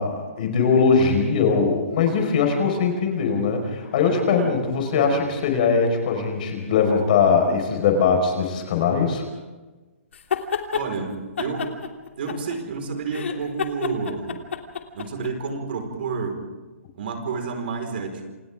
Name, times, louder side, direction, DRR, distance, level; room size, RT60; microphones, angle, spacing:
voice 1, 0.0-9.2, left 5 dB, 35° left, 4 dB, 4.9 m, -21 dB
voice 2, 4.0-4.7 5.0-5.2 10.7-11.8 12.2-14.4 14.9-16.4 17.0-18.3, right 4 dB, 45° right, 4 dB, 4.7 m, -30 dB
sound 1, 10.1-10.9 11.4-12.8 13.1-15.3, left 7 dB, 60° left, 3.0 m, -28 dB
28.5 x 28.0 x 3.7 m, 1.2 s
hypercardioid pair, 175°, 8 cm